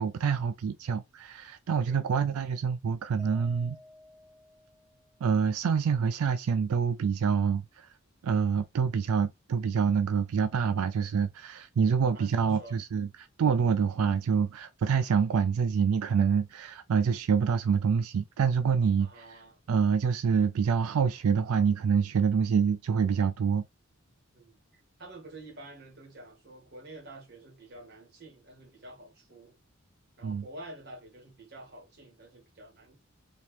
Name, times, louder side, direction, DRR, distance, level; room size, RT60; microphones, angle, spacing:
voice 1, 0.0-3.8 5.2-7.9 8.2-19.4 19.7-23.6 30.2-30.4, right 6 dB, 90° right, 0.4 m, -26 dB
Mallet percussion, 3.2-5.5, left 1 dB, 15° left, 1.4 m, -54 dB
voice 2, 12.1-12.8 19.0-19.6 24.3-24.6 25.0-29.6 30.2-33.0, right 1 dB, 50° right, 1.9 m, -48 dB
4.4 x 2.9 x 3.2 m
head